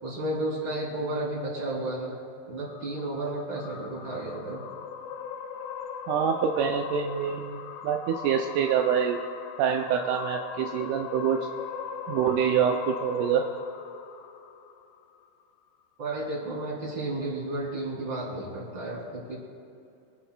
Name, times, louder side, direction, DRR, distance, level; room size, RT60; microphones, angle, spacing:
voice 1, 0.0-2.2 2.5-4.6 16.0-19.4, right 1 dB, 35° right, -4 dB, 3.8 m, -32 dB
sound 1, 2.6-15.1, left 7 dB, 75° left, 1.9 m, -39 dB
voice 2, 6.1-9.2 9.6-11.4 12.1-13.4, right 8 dB, 80° right, 3 dB, 2.1 m, -26 dB
24.0 x 11.5 x 2.3 m, 2.6 s
omnidirectional pair, 3.6 m